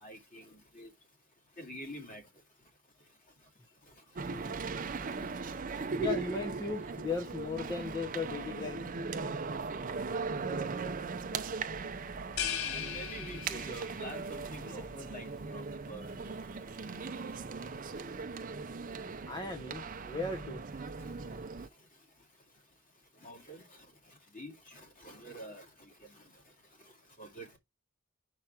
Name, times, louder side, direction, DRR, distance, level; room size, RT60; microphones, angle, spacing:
voice 1, 0.0-0.5 0.7-0.9 1.6-2.2 12.7-15.3 15.5-16.3 23.2-23.7 24.3-26.1 27.2-27.5, equal, 40° left, 2.5 m, -47 dB
sound 1, 4.2-21.7, right 4 dB, 40° right, 0.5 m, -39 dB
voice 2, 6.0-9.2 9.6-10.0 19.3-20.6, left 3 dB, 20° left, 0.9 m, -37 dB
sound 2, 12.4-14.1, left 9 dB, 90° left, 0.9 m, -37 dB
6.1 x 4.7 x 4.4 m
head